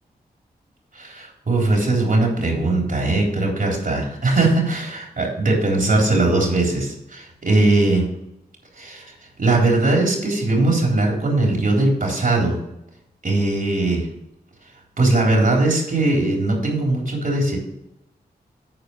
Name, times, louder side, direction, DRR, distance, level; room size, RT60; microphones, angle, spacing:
voice 1, 0.9-8.1 8.8-9.1 9.4-12.6 13.2-14.1 15.0-17.6, right 2 dB, 55° right, -1 dB, 3.7 m, -20 dB
9.8 x 4.5 x 6.1 m, 0.83 s
cardioid pair, 45°, 17 cm